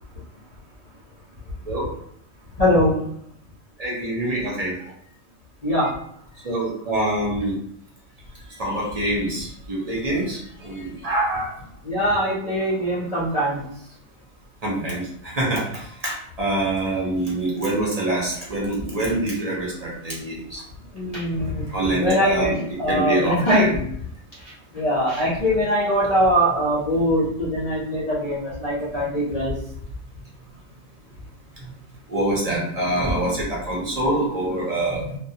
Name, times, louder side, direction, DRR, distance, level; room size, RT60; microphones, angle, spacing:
voice 1, 2.6-3.0 5.6-5.9 11.8-13.6 20.9-23.7 24.7-29.5, equal, 45° left, -8 dB, 0.5 m, -22 dB
voice 2, 3.8-4.7 6.4-7.5 8.6-11.5 14.6-20.6 21.7-22.6 22.9-23.8 32.1-35.2, right 1 dB, 45° right, -4 dB, 0.5 m, -25 dB
2.2 x 2.1 x 2.7 m, 0.69 s
omnidirectional pair, 1.4 m